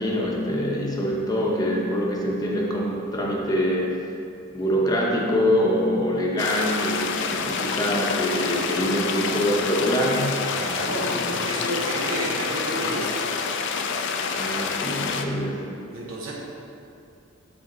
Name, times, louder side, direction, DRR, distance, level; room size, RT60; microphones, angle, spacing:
voice 1, 0.0-4.0 4.5-10.3 10.9-11.4 14.4-15.6, equal, 20° left, -2 dB, 0.9 m, -24 dB
sound 1, 6.4-15.2, left 5 dB, 60° left, 0.4 m, -27 dB
voice 2, 10.5-13.3 15.9-16.4, right 1 dB, 70° right, -4 dB, 0.9 m, -31 dB
9.0 x 3.5 x 3.8 m, 2.5 s
head